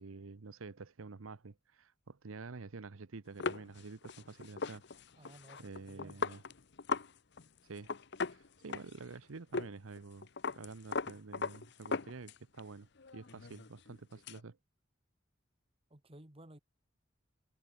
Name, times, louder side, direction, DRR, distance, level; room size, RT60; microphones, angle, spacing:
voice 1, 0.0-4.8 5.6-6.4 7.6-7.9 8.3-10.3 10.5-14.6, right 4 dB, 85° right, 0.8 m, -49 dB
sound 1, 3.4-7.1 7.4-7.5 7.8-9.1 9.5-9.7 10.0-12.6 13.0-14.4, left 4 dB, 55° left, 0.8 m, -39 dB
voice 2, 5.2-6.2 15.9-16.6, right 1 dB, 30° right, 1.7 m, -56 dB
head